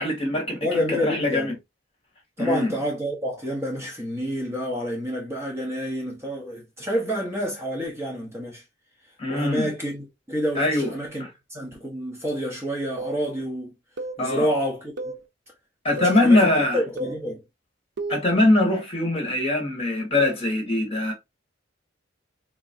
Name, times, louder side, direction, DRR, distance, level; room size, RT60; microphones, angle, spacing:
voice 1, 0.0-1.5 2.4-2.7 9.2-9.7 10.5-10.9 11.2-11.3 14.2-14.5 15.8-16.8 18.1-21.1, left 2 dB, 30° left, 1.5 m, -22 dB
voice 2, 0.6-1.5 2.4-8.6 9.3-13.7 14.2-15.1 15.9-17.4, equal, 15° right, 0.9 m, -28 dB
sound 1, 13.0-13.2 14.0-14.2 15.0-15.2 16.0-16.2 17.0-17.2 18.0-18.3, right 2 dB, 60° right, 0.6 m, -32 dB
3.5 x 3.0 x 2.6 m
head